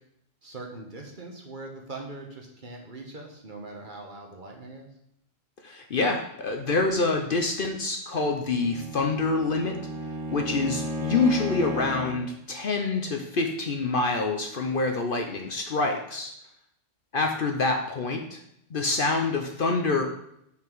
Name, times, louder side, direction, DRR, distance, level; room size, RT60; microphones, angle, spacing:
voice 1, 0.4-4.9, right 2 dB, 45° right, 1 dB, 1.3 m, -41 dB
voice 2, 5.6-9.8 10.3-16.3 17.1-18.4 18.7-20.0, left 3 dB, 50° left, 3 dB, 0.8 m, -26 dB
Bowed string instrument, 8.4-12.3, equal, 70° right, 1.4 m, -34 dB
5.9 x 5.8 x 4.5 m, 0.76 s
omnidirectional pair, 1.3 m